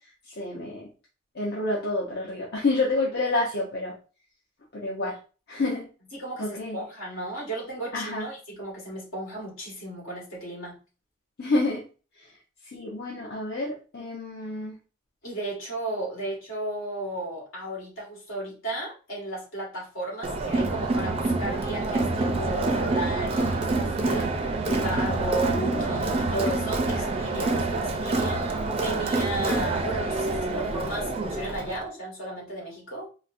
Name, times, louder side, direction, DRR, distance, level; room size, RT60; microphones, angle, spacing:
voice 1, 0.3-0.8 1.3-3.9 4.7-5.2 5.5-5.9 6.4-6.8 7.9-8.3 11.4-11.8 12.2-12.3 12.7-14.8, left 2 dB, 55° left, -4 dB, 0.7 m, -28 dB
voice 2, 6.1-10.8 15.2-33.1, right 1 dB, 75° left, -3 dB, 1.6 m, -34 dB
Crowd, 20.2-31.8, right 2 dB, 30° right, 0.4 m, -27 dB
4.1 x 2.1 x 2.5 m, 0.35 s
head